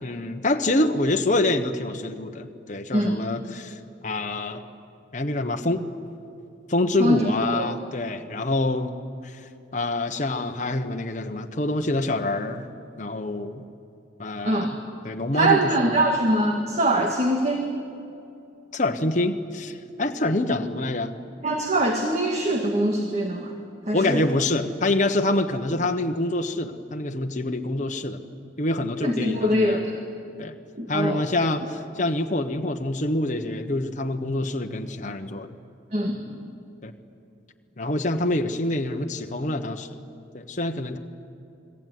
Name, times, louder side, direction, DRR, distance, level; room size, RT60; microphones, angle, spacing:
voice 1, 0.0-4.6 5.1-5.8 6.7-8.9 9.2-9.4 9.7-12.7 13.0-13.6 14.2-14.8 15.0-16.0 18.7-21.2 23.9-28.2 28.6-29.8 30.4-30.5 30.9-35.5 36.8-36.9 37.8-39.9 40.3-41.0, left 2 dB, 40° left, 4 dB, 1.3 m, -26 dB
voice 2, 7.0-7.7 14.4-14.7 15.3-17.7 21.4-23.5 23.9-24.3 29.0-30.0 30.8-31.2 35.9-36.4, right 1 dB, 35° right, 3 dB, 1.9 m, -23 dB
29.5 x 21.0 x 9.5 m, 2.7 s
head